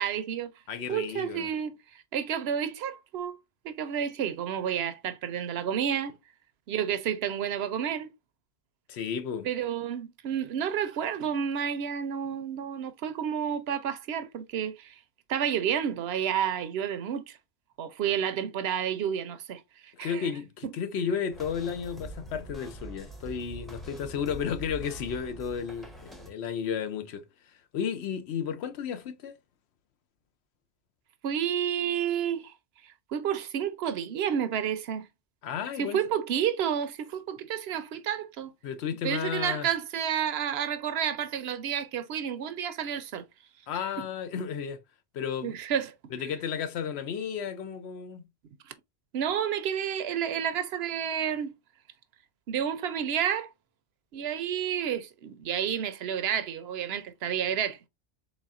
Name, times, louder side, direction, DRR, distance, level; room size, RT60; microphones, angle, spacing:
voice 1, 0.0-0.5 0.9-1.8 2.1-3.4 3.6-6.1 6.7-8.1 9.4-15.0 15.3-17.4 17.8-20.3 31.2-32.5 32.8-35.1 35.8-38.5 39.0-43.2 44.0-44.1 45.4-45.9 49.1-51.5 52.5-53.5 54.1-57.8, right 8 dB, 70° right, 0.8 m, -30 dB
voice 2, 0.7-1.5 8.9-9.5 20.0-27.2 27.7-29.4 35.4-36.0 38.6-39.7 43.7-44.8 45.1-45.6 46.1-48.2, left 7 dB, 75° left, 0.9 m, -33 dB
sound 1, 21.3-26.3, right 1 dB, ahead, 0.5 m, -44 dB
4.1 x 3.5 x 2.4 m
omnidirectional pair, 1.1 m